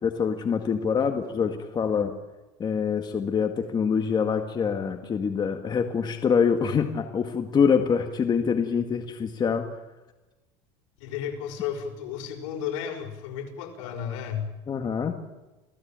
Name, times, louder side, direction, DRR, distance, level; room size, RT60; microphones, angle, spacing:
voice 1, 0.0-2.1 2.6-9.7 13.8-13.9 14.7-15.2, left 6 dB, 25° left, 6 dB, 1.9 m, -25 dB
voice 2, 11.0-14.5, left 8 dB, 80° left, 4 dB, 5.7 m, -33 dB
28.0 x 17.5 x 8.9 m, 1.1 s
supercardioid pair, 130°, 16 cm